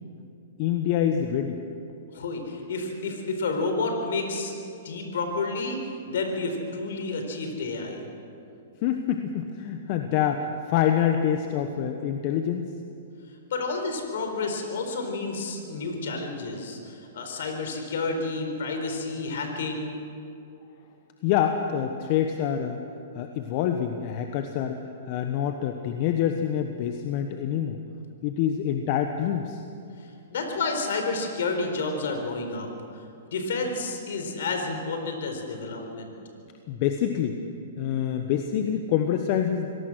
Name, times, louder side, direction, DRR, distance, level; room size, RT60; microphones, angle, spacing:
voice 1, 0.6-1.6 8.8-12.7 21.2-22.8 23.1-24.8 25.1-27.8 28.2-29.6 36.7-37.4 37.8-39.7, left 9 dB, 45° left, 6 dB, 1.2 m, -26 dB
voice 2, 2.1-4.5 4.8-8.0 13.5-20.0 30.3-32.7 33.3-36.1, left 3 dB, 70° left, 4 dB, 4.3 m, -30 dB
24.5 x 18.0 x 6.4 m, 2.6 s
hypercardioid pair, 125°, 0 cm